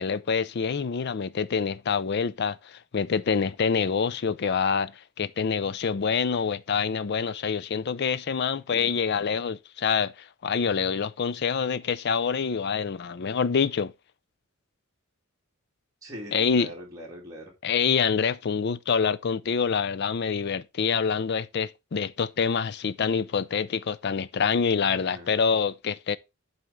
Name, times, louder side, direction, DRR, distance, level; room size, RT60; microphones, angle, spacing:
voice 1, 0.0-4.9 5.2-13.9 16.3-16.7 17.6-26.2, left 6 dB, 50° left, 0.4 m, -26 dB
voice 2, 16.0-17.5 24.7-25.4, equal, 15° right, 2.2 m, -42 dB
11.0 x 4.2 x 3.6 m
head